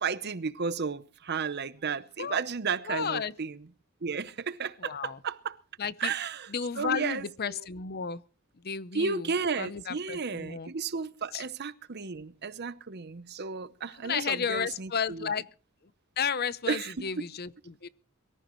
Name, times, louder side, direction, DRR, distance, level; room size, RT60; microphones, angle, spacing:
voice 1, 0.0-3.6 4.0-5.6 6.0-6.5 6.8-7.6 8.9-15.3 16.7-17.2, right 5 dB, 50° right, 0.8 m, -33 dB
voice 2, 2.9-3.3 4.8-5.2 5.8-6.1 6.5-8.2 8.6-9.3 9.6-10.7 11.3-11.5 14.0-15.4 16.2-17.9, left 6 dB, 45° left, 0.7 m, -33 dB
23.0 x 14.5 x 3.1 m
head